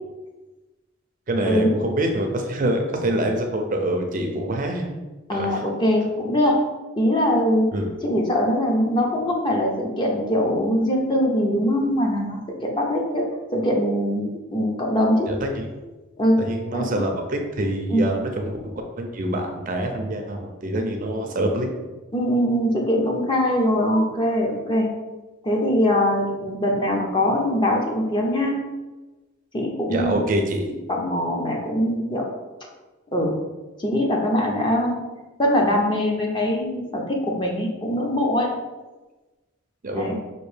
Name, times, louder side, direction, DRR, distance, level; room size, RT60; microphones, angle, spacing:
voice 1, 1.3-4.9 5.3-5.6 7.7-7.9 15.3-15.7 16.4-21.9 29.9-30.7 39.8-40.1, right 1 dB, 40° right, 3 dB, 0.4 m, -25 dB
voice 2, 5.3-6.6 7.0-7.7 8.0-13.2 13.5-15.3 16.2-16.4 16.7-17.0 17.9-18.0 22.1-24.9 25.4-28.6 29.5-30.2 30.9-32.2 33.1-33.3 33.8-35.0 35.4-38.5 39.9-40.1, equal, 20° left, 0 dB, 0.6 m, -22 dB
5.2 x 2.6 x 3.2 m, 1.2 s
head